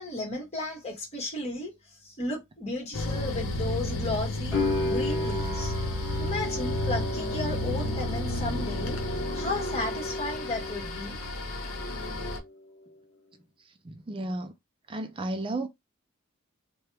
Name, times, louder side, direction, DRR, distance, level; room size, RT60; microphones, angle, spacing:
voice 1, 0.0-5.7 6.2-11.2, left 2 dB, 30° left, 1.6 m, -34 dB
sound 1, 2.9-12.4, left 1 dB, 85° left, 0.8 m, -32 dB
sound 2, 4.5-11.3 11.6-12.5, left 2 dB, ahead, 1.2 m, -34 dB
voice 2, 13.8-14.5 14.9-15.7, right 2 dB, 25° right, 0.4 m, -33 dB
2.8 x 2.2 x 3.3 m
head